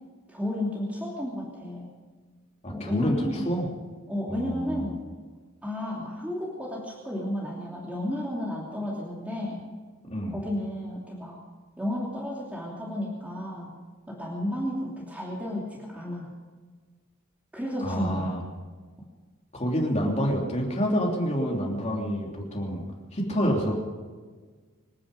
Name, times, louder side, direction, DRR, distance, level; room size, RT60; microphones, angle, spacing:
voice 1, 0.3-1.9 2.7-3.5 4.1-5.0 5.6-9.6 10.3-11.4 11.8-13.7 14.1-16.3 17.5-18.4, left 1 dB, 5° right, -4 dB, 2.9 m, -32 dB
voice 2, 2.6-3.1 3.4-3.7 4.3-4.7 10.1-10.4 17.8-18.4 19.5-22.8 23.1-23.7, equal, 30° left, -1 dB, 3.2 m, -27 dB
26.0 x 10.0 x 5.4 m, 1.5 s
head